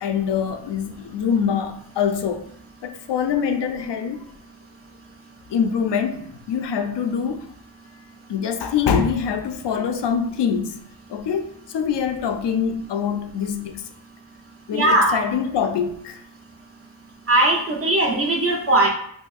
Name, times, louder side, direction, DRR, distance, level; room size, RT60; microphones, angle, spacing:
voice 1, 0.0-2.4 2.8-4.2 5.5-7.5 8.3-10.8 11.1-13.8 14.7-16.2, left 7 dB, 65° left, 0.5 m, -24 dB
voice 2, 14.7-15.2 17.3-18.9, right 1 dB, 30° right, 0.8 m, -19 dB
2.8 x 2.6 x 2.3 m
cardioid pair, 55°, 46 cm